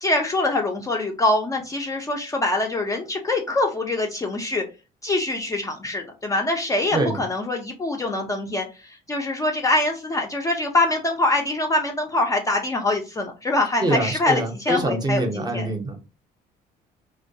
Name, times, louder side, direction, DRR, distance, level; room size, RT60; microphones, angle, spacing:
voice 1, 0.0-4.6 5.0-15.7, left 2 dB, 20° left, 2 dB, 0.4 m, -24 dB
voice 2, 13.8-16.0, right 2 dB, 25° right, 5 dB, 0.6 m, -24 dB
2.2 x 2.2 x 2.6 m, 0.29 s
cardioid pair, 110°, 17 cm